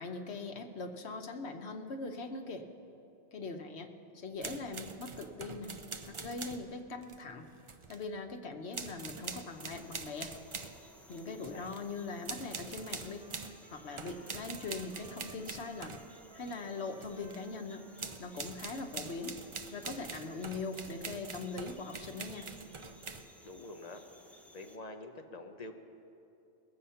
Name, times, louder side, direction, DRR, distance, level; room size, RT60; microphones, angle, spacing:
voice 1, 0.0-2.7 3.3-5.7 6.1-7.5 7.9-10.3 11.1-13.3 13.7-15.9 16.3-17.8 18.2-19.3 19.7-22.5, left 3 dB, 90° left, 6 dB, 1.2 m, -41 dB
sound 1, 4.4-6.7 7.0-8.1 8.7-10.8 11.1-11.9 12.2-13.6 14.0-16.6 17.0-17.5 18.0-23.3, right 4 dB, 35° right, 0.5 m, -44 dB
sound 2, 9.1-24.8, equal, ahead, 0.7 m, -59 dB
voice 2, 11.3-11.7 23.4-24.0 24.5-25.7, left 2 dB, 40° left, 5 dB, 0.9 m, -46 dB
Trumpet, 12.7-20.8, right 2 dB, 65° right, 1.6 m, -61 dB
20.5 x 7.8 x 5.7 m, 2.8 s
omnidirectional pair, 1.1 m